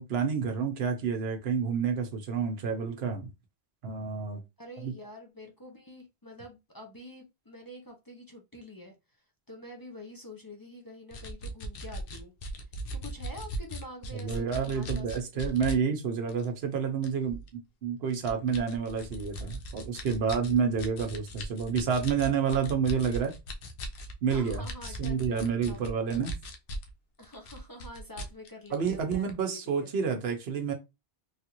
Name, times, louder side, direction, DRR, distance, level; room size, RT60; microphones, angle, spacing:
voice 1, 0.0-3.3 3.8-4.4 4.8-4.9 14.2-17.4 17.8-23.3 24.2-24.6 25.0-26.3 28.7-30.7, right 6 dB, 75° right, 1.0 m, -29 dB
voice 2, 4.6-8.9 9.5-12.3 12.9-15.5 24.3-26.0 27.2-29.9, left 1 dB, 25° left, 0.5 m, -47 dB
sound 1, 11.1-15.8 16.3-16.5 17.0-17.5 18.1-26.9 27.2-29.3, right 1 dB, 65° left, 0.8 m, -38 dB
3.3 x 2.5 x 2.9 m
omnidirectional pair, 1.1 m